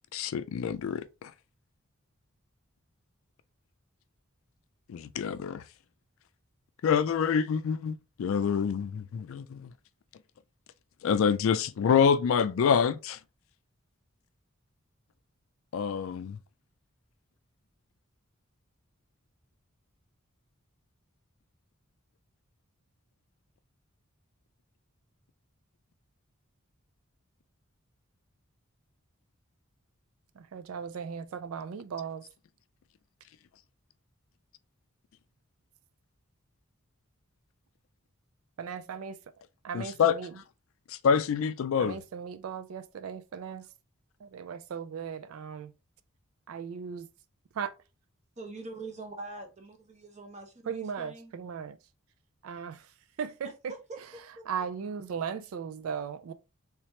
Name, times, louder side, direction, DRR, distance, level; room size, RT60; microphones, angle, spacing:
voice 1, 0.1-1.3 4.9-5.6 6.8-9.7 11.0-13.2 15.7-16.4 39.7-40.2 40.9-42.0, left 7 dB, 70° left, 0.3 m, -26 dB
voice 2, 30.4-32.2 38.6-39.2 39.6-40.3 41.8-43.6 44.2-45.7 46.5-47.1 47.6-47.7 50.7-51.8 52.4-52.8 53.2-53.7 54.5-56.3, right 7 dB, 85° right, 0.4 m, -37 dB
voice 3, 48.4-51.3 53.4-54.7, right 2 dB, 35° right, 0.9 m, -44 dB
3.3 x 3.1 x 2.9 m
head